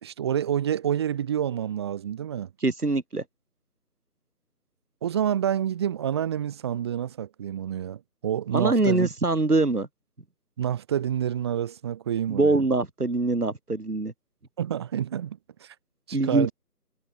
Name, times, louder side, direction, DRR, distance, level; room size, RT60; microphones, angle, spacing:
voice 1, 0.0-2.5 5.0-9.1 10.6-12.6 14.6-15.7 16.1-16.5, right 9 dB, 15° right, 5.2 m, -28 dB
voice 2, 2.6-3.2 8.5-9.9 12.3-14.1 16.1-16.5, right 3 dB, 65° right, 5.2 m, -23 dB
figure-of-eight pair, 165°, 48 cm